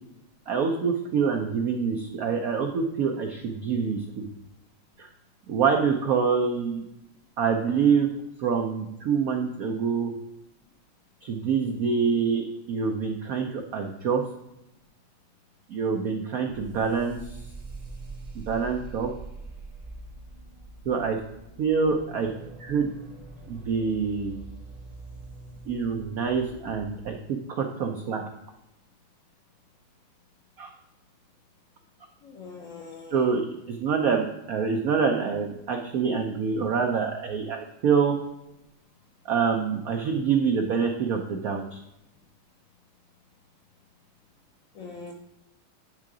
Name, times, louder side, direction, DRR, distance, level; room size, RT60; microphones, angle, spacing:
voice 1, 0.5-4.3 5.0-5.1 5.5-6.8 7.4-8.1 8.4-10.1 11.2-14.3 15.7-17.2 18.3-19.1 20.9-21.2 21.6-22.3 22.6-22.9 23.5-24.4 25.7-28.2 30.6-30.7 33.1-38.2 39.3-41.8, right 6 dB, 85° right, 3 dB, 0.7 m, -26 dB
sound 1, 16.5-27.2, right 3 dB, 35° right, 0.7 m, -44 dB
voice 2, 32.2-33.3 44.7-45.1, left 4 dB, 65° left, 0 dB, 0.8 m, -42 dB
9.3 x 3.7 x 4.8 m, 0.88 s
omnidirectional pair, 2.3 m